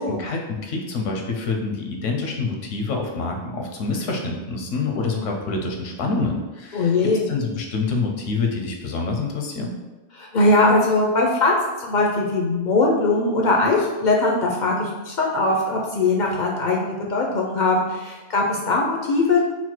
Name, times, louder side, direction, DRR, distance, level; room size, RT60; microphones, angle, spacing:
voice 1, 0.0-9.7, left 3 dB, 85° left, 1 dB, 1.0 m, -27 dB
voice 2, 6.7-7.3 10.2-19.4, left 2 dB, 55° left, -2 dB, 0.5 m, -20 dB
4.1 x 2.1 x 4.3 m, 1.2 s
omnidirectional pair, 1.3 m